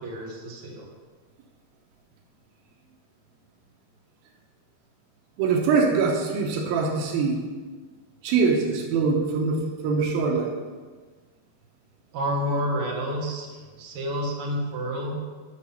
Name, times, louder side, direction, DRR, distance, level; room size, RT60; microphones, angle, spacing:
voice 1, 0.0-0.9 12.1-13.5 13.8-15.1, equal, 50° right, -2 dB, 1.8 m, -29 dB
voice 2, 5.4-7.4 8.2-10.5, right 4 dB, 85° right, 2 dB, 2.8 m, -23 dB
7.1 x 6.6 x 5.6 m, 1.4 s
omnidirectional pair, 4.2 m